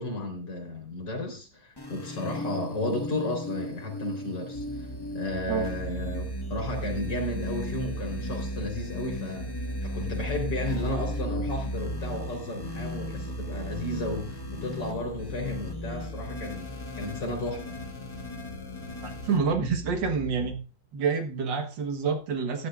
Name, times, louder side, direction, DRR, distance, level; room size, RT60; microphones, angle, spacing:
voice 1, 0.0-4.9 5.1-6.2 6.5-16.7 17.0-17.8, left 1 dB, 65° left, 4.5 m, -33 dB
sound 1, 1.8-19.4, left 2 dB, 15° left, 1.3 m, -39 dB
sound 2, 4.5-20.6, right 1 dB, 40° left, 1.2 m, -37 dB
voice 2, 19.0-20.6 20.9-22.7, right 5 dB, 70° right, 2.0 m, -28 dB
14.5 x 11.5 x 2.4 m
omnidirectional pair, 2.1 m